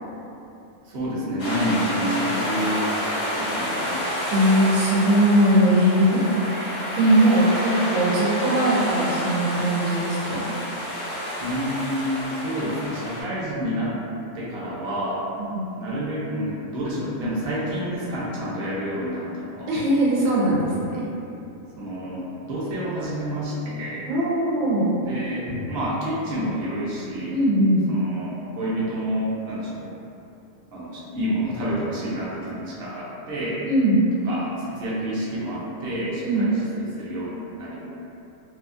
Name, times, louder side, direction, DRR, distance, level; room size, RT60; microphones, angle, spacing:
voice 1, 0.8-4.1 11.4-14.0 14.3-15.3 15.8-19.7 21.8-24.0 25.0-27.4 27.9-29.9 30.7-33.6 34.2-37.8, equal, 55° right, -8 dB, 0.8 m, -29 dB
sound 1, 1.4-13.2, equal, 55° left, 0.5 m, -29 dB
voice 2, 4.3-6.7 7.0-10.5 15.4-15.7 19.7-21.1 24.1-24.9 27.3-27.9 33.6-34.0 36.2-36.5, right 1 dB, 85° right, -6 dB, 1.1 m, -20 dB
sound 2, 20.5-22.2 25.5-26.1, equal, 10° right, 0.6 m, -40 dB
2.7 x 2.3 x 2.5 m, 2.8 s
omnidirectional pair, 1.4 m